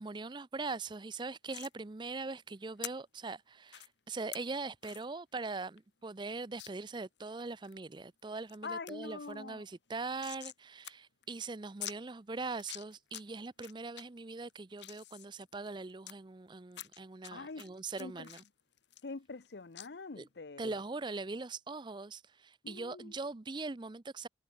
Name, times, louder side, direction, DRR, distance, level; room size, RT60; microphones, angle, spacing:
voice 1, 0.0-18.4 20.2-20.3 20.6-24.3, right 3 dB, 25° right, 0.5 m, -41 dB
sound 1, 1.5-1.7 2.8-2.9 3.7-3.9 4.3-4.4 4.8-5.0 5.4-5.5 5.8-5.9 6.6-6.7 7.2-7.8 8.2-8.6 8.9-9.0 9.2-10.6 10.8-10.9 11.2-11.3 11.8-12.0 12.5-13.2 13.6-14.0 14.5-16.1 16.7-17.3 17.6-19.5 19.8-19.9, left 13 dB, 85° left, 1.5 m, -46 dB
voice 2, 8.6-9.6 17.3-17.7 18.0-18.3 19.0-20.8 22.6-23.2, left 4 dB, 70° left, 0.8 m, -44 dB
head